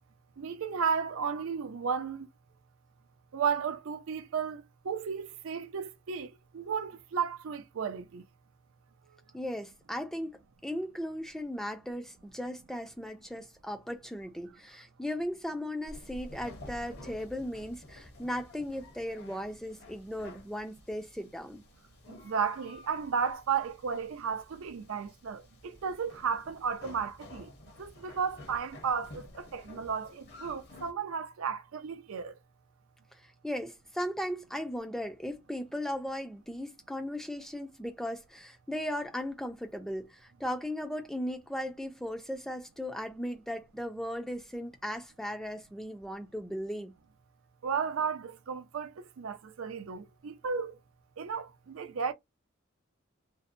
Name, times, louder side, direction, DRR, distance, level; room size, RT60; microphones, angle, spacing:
voice 1, 0.4-2.3 3.3-8.2 22.2-27.5 27.8-32.3 47.6-50.8 51.2-52.1, right 6 dB, 80° right, 0.4 m, -34 dB
voice 2, 9.3-21.6 33.1-46.9, equal, ahead, 0.3 m, -37 dB
sound 1, 15.9-30.9, left 1 dB, 50° left, 0.7 m, -51 dB
2.6 x 2.0 x 2.5 m
head